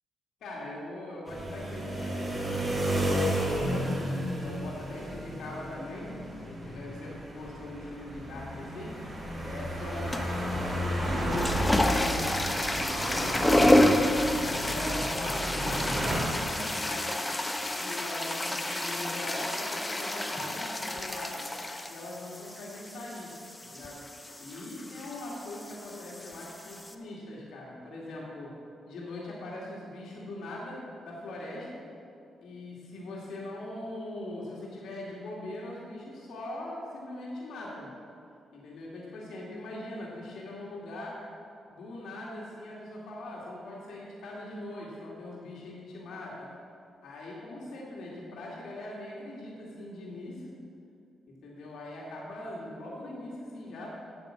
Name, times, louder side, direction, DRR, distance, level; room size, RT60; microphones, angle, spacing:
voice 1, 0.4-4.0 4.4-6.2 6.4-9.0 9.4-17.2 17.8-21.4 21.9-23.3 23.6-24.1 24.4-28.6 28.9-31.9 32.4-37.9 38.5-41.2 41.7-46.5 47.0-50.6 51.3-53.9, left 1 dB, 80° left, -4 dB, 2.3 m, -41 dB
sound 1, 1.3-16.2, equal, 30° right, 3.1 m, -32 dB
sound 2, 10.1-10.5 11.1-26.9, left 1 dB, 15° left, 0.8 m, -29 dB
9.0 x 8.0 x 7.3 m, 2.5 s
cardioid pair, 115°, 0 cm